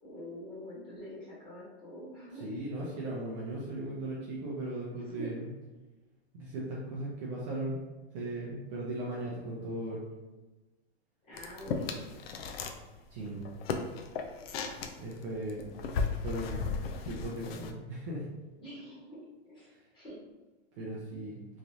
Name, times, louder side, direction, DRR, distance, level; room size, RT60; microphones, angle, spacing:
voice 1, 0.0-2.4 5.0-5.3 11.2-12.1 18.6-19.2 19.4-20.2, equal, 15° left, -9 dB, 1.1 m, -45 dB
voice 2, 2.3-5.5 6.3-7.8 8.1-10.0 13.1-13.4 15.0-15.7 16.2-16.8 17.0-18.3 19.6-19.9 20.8-21.4, right 1 dB, 35° right, -5 dB, 0.5 m, -37 dB
sound 1, 11.4-12.8 13.1-17.7, left 5 dB, 70° left, 0.4 m, -36 dB
3.1 x 2.4 x 2.6 m, 1.1 s
supercardioid pair, 155°, 32 cm